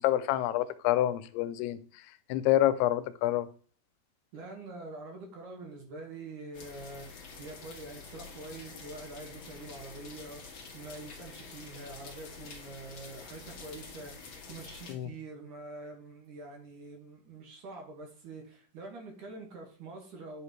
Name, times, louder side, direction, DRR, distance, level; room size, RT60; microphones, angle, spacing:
voice 1, 0.0-1.8 2.3-3.5 14.9-15.1, left 14 dB, 90° left, 2.6 m, -27 dB
voice 2, 4.3-20.4, right 2 dB, 60° right, 2.9 m, -45 dB
sound 1, 6.5-14.9, left 4 dB, 50° left, 1.5 m, -48 dB
10.5 x 5.8 x 3.1 m
omnidirectional pair, 4.5 m